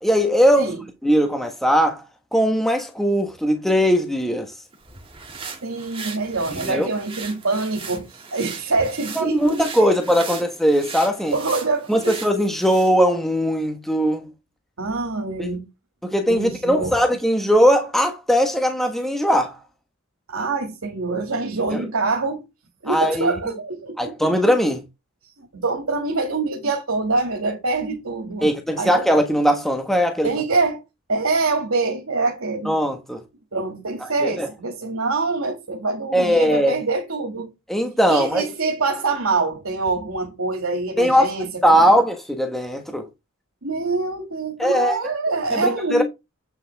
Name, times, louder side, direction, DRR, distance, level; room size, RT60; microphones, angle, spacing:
voice 1, 0.0-0.7 1.0-2.0 2.3-4.5 6.6-6.9 9.1-11.3 11.9-14.3 15.4-15.5 16.0-19.6 21.7-21.8 22.9-23.3 24.0-24.8 28.4-30.3 32.6-33.2 34.2-34.5 36.1-36.8 37.7-38.4 41.0-41.3 41.6-43.0 44.6-45.0 45.5-46.0, equal, ahead, 1.3 m, -19 dB
sound 1, 4.7-13.0, right 5 dB, 25° right, 2.4 m, -38 dB
voice 2, 5.6-10.0 10.2-10.4 11.3-12.2 14.8-15.7 16.3-17.0 20.3-22.4 22.8-24.4 25.4-28.5 28.8-29.1 30.2-30.8 31.1-32.7 33.5-37.5 38.1-41.9 43.6-46.0, right 3 dB, 80° right, 2.2 m, -25 dB
8.7 x 7.2 x 3.5 m
head